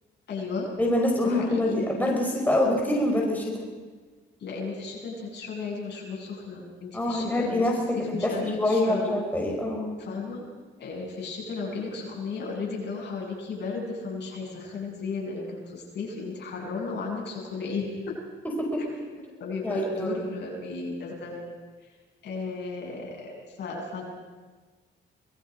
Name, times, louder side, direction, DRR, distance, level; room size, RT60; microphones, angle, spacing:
voice 1, 0.3-0.7 1.2-1.8 4.4-7.6 7.9-9.2 10.0-10.4 10.8-18.2 18.8-18.9 19.4-21.4 22.2-24.0, left 4 dB, 60° left, -2 dB, 7.9 m, -34 dB
voice 2, 0.8-3.7 6.9-7.8 8.1-9.9 18.6-18.8 19.6-20.2, left 1 dB, 10° left, -1 dB, 5.0 m, -25 dB
26.0 x 21.0 x 5.2 m, 1.4 s
cardioid pair, 90°, 20 cm